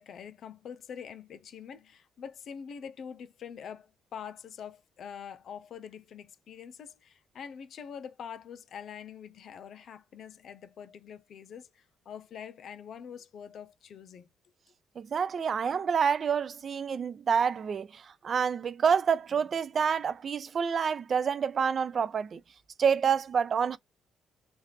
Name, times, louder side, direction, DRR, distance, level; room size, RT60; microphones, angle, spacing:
voice 1, 0.0-14.3, left 7 dB, 65° left, 0.5 m, -45 dB
voice 2, 15.0-22.4 22.8-23.8, right 6 dB, 50° right, 0.3 m, -28 dB
3.2 x 2.4 x 3.2 m
cardioid pair, 90°, 0 cm